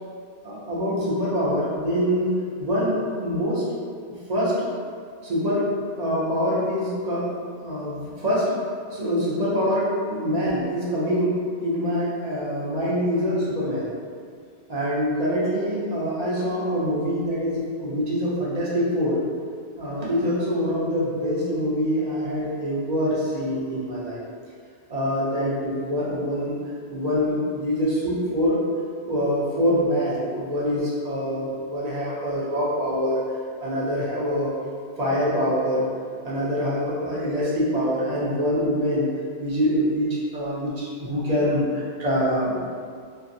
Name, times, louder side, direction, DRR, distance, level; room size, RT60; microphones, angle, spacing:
voice 1, 0.4-2.3 2.6-3.6 4.1-4.7 5.2-5.7 6.0-7.3 7.6-8.5 8.9-13.9 14.7-19.2 19.8-24.2 24.9-26.5 26.9-28.6 29.0-33.2 33.6-34.5 35.0-35.9 36.2-39.1 39.4-42.6, equal, 45° right, -7 dB, 0.6 m, -25 dB
2.5 x 2.4 x 2.6 m, 2.1 s
omnidirectional pair, 1.1 m